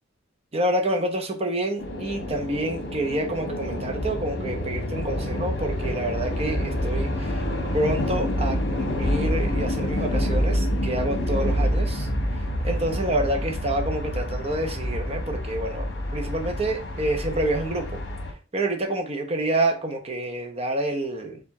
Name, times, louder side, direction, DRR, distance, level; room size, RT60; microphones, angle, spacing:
voice 1, 0.5-7.4 7.7-12.1 12.6-18.0 18.5-21.4, right 1 dB, 35° right, 0.8 m, -28 dB
sound 1, 1.8-18.3, equal, 70° left, 1.2 m, -27 dB
4.5 x 2.4 x 4.1 m
head